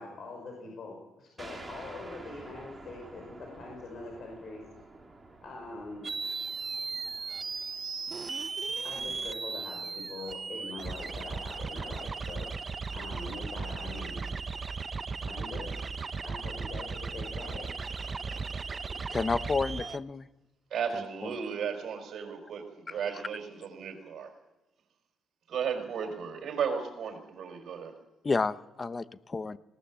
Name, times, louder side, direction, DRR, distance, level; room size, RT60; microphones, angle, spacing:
voice 1, 0.0-4.6 5.4-6.1 8.8-12.5 12.9-14.3 15.3-15.7 16.2-17.7, left 3 dB, 55° left, 0 dB, 6.1 m, -43 dB
sound 1, 1.4-10.6, right 2 dB, 20° right, 3.4 m, -51 dB
sound 2, 6.0-20.0, right 4 dB, 35° right, 0.8 m, -36 dB
voice 2, 19.1-20.3 22.9-23.0 28.2-29.6, left 4 dB, 30° left, 14 dB, 0.9 m, -30 dB
voice 3, 20.7-24.3 25.5-27.9, right 7 dB, 60° right, 5 dB, 5.2 m, -35 dB
19.5 x 18.5 x 7.6 m, 1.0 s
cardioid pair, 90°, 0 cm